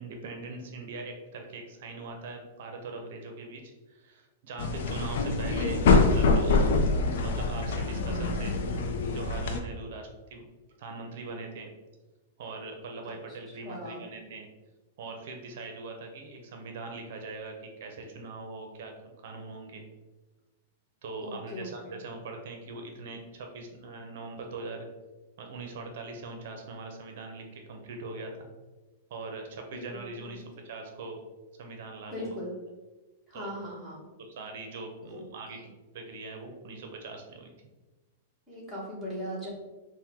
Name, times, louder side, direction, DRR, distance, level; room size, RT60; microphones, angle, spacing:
voice 1, 0.0-6.8 7.2-8.8 9.1-10.4 10.8-11.7 12.4-14.5 15.0-19.8 21.0-24.9 25.4-28.5 29.1-31.2 31.6-32.3 33.3-33.5 34.2-37.5, right 3 dB, 55° right, 3 dB, 0.6 m, -41 dB
sound 1, 4.6-9.6, left 3 dB, 65° left, 0.5 m, -25 dB
voice 2, 13.6-14.0 21.2-22.0 29.9-30.4 32.1-32.5 33.3-34.0 35.1-35.2 35.5-35.7 38.5-39.5, equal, 5° left, -8 dB, 1.1 m, -39 dB
4.4 x 2.2 x 3.5 m, 1.2 s
supercardioid pair, 170°, 0 cm